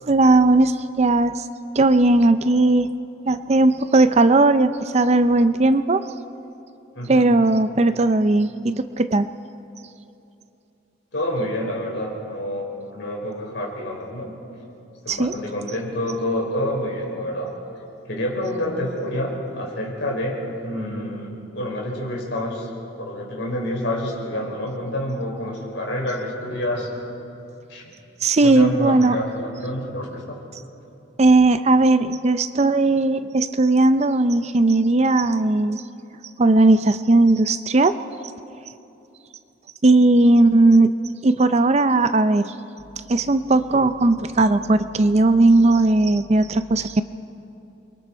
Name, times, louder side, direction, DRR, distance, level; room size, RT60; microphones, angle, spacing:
voice 1, 0.0-1.5 1.8-2.9 3.3-6.0 7.1-9.3 15.1-15.3 28.2-29.2 31.2-35.8 36.4-37.9 39.8-40.9 41.2-42.5 43.1-47.0, right 2 dB, 35° right, 11 dB, 0.5 m, -17 dB
voice 2, 7.0-7.3 11.1-14.3 15.0-17.5 18.1-22.7 23.0-26.9 27.7-27.9 28.4-30.2, left 1 dB, 65° left, -2 dB, 5.2 m, -28 dB
29.5 x 23.0 x 4.5 m, 2.8 s
head